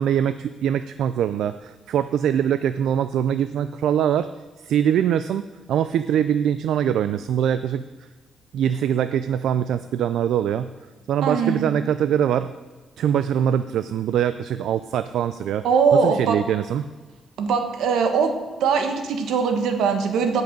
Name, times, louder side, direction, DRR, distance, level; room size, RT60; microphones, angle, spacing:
voice 1, 0.0-4.3 4.6-5.4 5.7-7.9 8.5-10.7 11.1-12.5 13.0-15.6 15.9-16.9, right 9 dB, 75° right, 12 dB, 0.3 m, -23 dB
voice 2, 11.2-11.7 15.6-16.4 17.4-18.3 18.6-20.4, right 5 dB, 90° right, 5 dB, 1.2 m, -21 dB
15.5 x 5.4 x 5.2 m, 1.3 s
cardioid pair, 165°, 0 cm